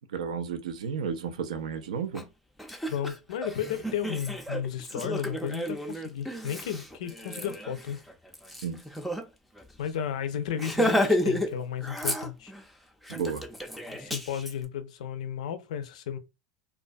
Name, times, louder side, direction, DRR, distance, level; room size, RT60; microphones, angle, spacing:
voice 1, 0.1-2.3 8.6-8.8 13.1-13.4, right 6 dB, 80° right, 0.4 m, -32 dB
Laughter, 2.1-2.2 2.6-9.2 9.6-9.7 10.0-10.2 10.6-11.5 11.8-12.6 13.1-14.5, left 1 dB, ahead, 0.4 m, -31 dB
voice 2, 2.9-8.0 9.8-12.5 13.9-16.2, left 9 dB, 75° left, 0.4 m, -33 dB
2.3 x 2.2 x 2.5 m
hypercardioid pair, 100°, 4 cm